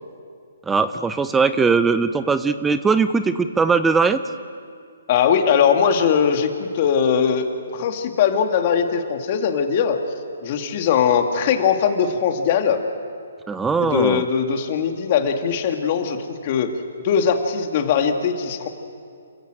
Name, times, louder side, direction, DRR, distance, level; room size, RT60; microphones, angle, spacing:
voice 1, 0.7-4.2 13.5-14.2, right 4 dB, 10° right, 12 dB, 0.6 m, -20 dB
voice 2, 5.1-7.5 7.7-10.0 10.4-12.8 13.8-16.7 17.0-18.7, left 7 dB, 40° left, 5 dB, 2.3 m, -20 dB
28.5 x 15.5 x 7.7 m, 2.3 s
hypercardioid pair, 145°, 0 cm